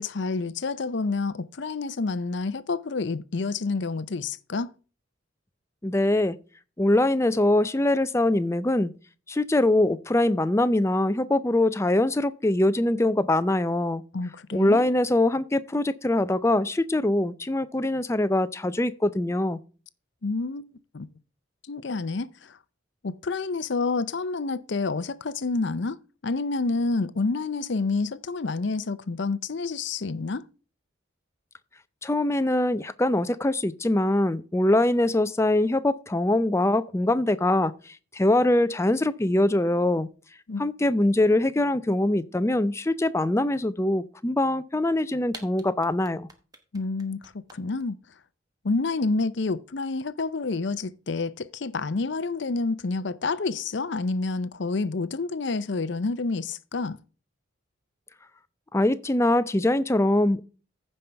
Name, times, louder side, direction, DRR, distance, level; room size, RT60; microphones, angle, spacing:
voice 1, 0.0-4.7 14.1-14.9 20.2-20.6 20.9-21.1 21.7-22.6 23.0-30.4 40.5-40.6 46.7-48.0 48.6-57.0, left 3 dB, 60° left, 0.6 m, -28 dB
voice 2, 5.8-6.4 6.8-8.9 9.3-14.0 14.5-19.6 32.0-40.1 40.6-46.3 58.7-60.4, left 1 dB, 15° left, 0.4 m, -23 dB
sound 1, 44.9-45.0 45.3-47.8, right 3 dB, 20° right, 1.2 m, -44 dB
15.0 x 5.5 x 3.4 m
head